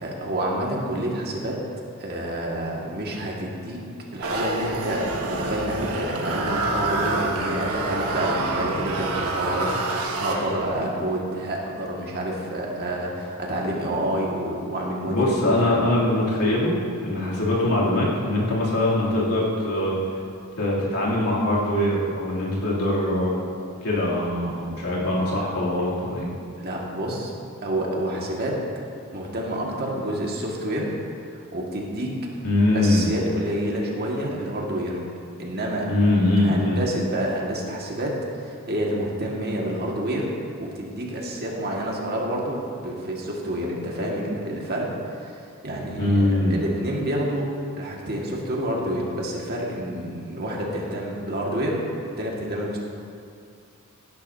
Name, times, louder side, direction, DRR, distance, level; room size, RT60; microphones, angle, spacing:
voice 1, 0.0-1.6 2.0-3.8 4.1-15.8 17.1-17.3 26.6-27.3 27.6-28.6 29.1-30.9 31.3-32.1 32.7-35.0 35.4-35.9 36.4-38.1 38.5-40.3 40.6-44.9 45.2-45.3 45.6-47.5 47.8-51.8 52.2-52.8, right 1 dB, 45° right, -3 dB, 1.9 m, -28 dB
sound 1, 4.2-10.8, right 2 dB, 75° right, 1.3 m, -27 dB
voice 2, 15.0-16.8 17.0-20.2 20.6-23.4 23.8-26.3 32.4-33.1 35.9-36.8 46.0-46.6, left 1 dB, 80° left, -6 dB, 3.0 m, -22 dB
17.0 x 10.5 x 2.8 m, 2.4 s
head